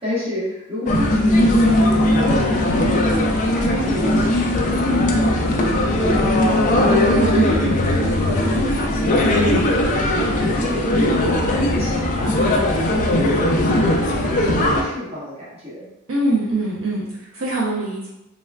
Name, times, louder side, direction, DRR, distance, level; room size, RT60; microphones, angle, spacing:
voice 1, 0.0-7.3 7.7-7.9 8.2-15.9, equal, 30° right, -8 dB, 0.9 m, -30 dB
sound 1, 0.9-14.8, left 1 dB, 35° left, 0.3 m, -18 dB
voice 2, 7.1-7.7 16.1-18.1, right 2 dB, 65° right, -5 dB, 0.5 m, -23 dB
3.3 x 2.2 x 2.2 m, 0.89 s
head